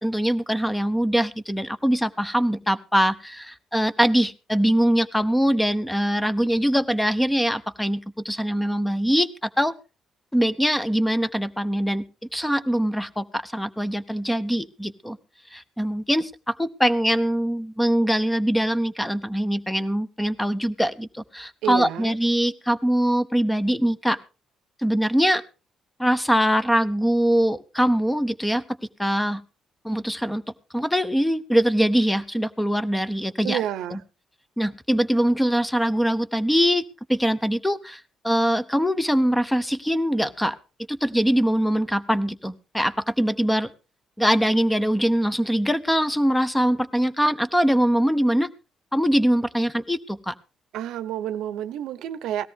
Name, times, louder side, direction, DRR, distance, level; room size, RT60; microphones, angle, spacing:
voice 1, 0.0-9.7 10.3-12.0 12.3-15.2 15.5-24.2 24.8-25.4 26.0-28.6 29.0-29.4 29.8-30.4 30.7-33.6 33.9-34.0 34.6-40.6 40.9-43.7 44.2-48.5 48.9-50.3, equal, 5° left, 14 dB, 0.8 m, -22 dB
voice 2, 21.6-22.2 33.4-34.0 50.7-52.5, right 11 dB, 85° right, 14 dB, 0.7 m, -29 dB
17.5 x 13.5 x 3.5 m, 0.31 s
cardioid pair, 90°, 0 cm